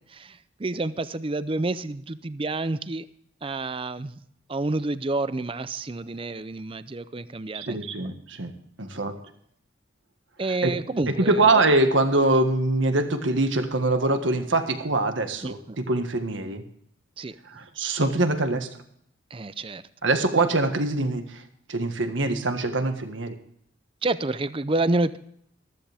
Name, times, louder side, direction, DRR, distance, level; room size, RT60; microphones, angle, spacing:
voice 1, 0.1-3.1 3.4-4.2 4.5-7.8 10.4-11.6 15.4-15.8 17.2-17.4 19.3-19.8 24.0-25.2, right 2 dB, 30° right, 15 dB, 0.5 m, -29 dB
voice 2, 7.5-8.5 8.8-9.1 10.6-10.7 11.2-16.6 17.6-18.7 20.0-21.2 21.7-23.3, right 2 dB, 80° right, 7 dB, 1.6 m, -23 dB
14.5 x 13.5 x 3.5 m, 0.70 s
head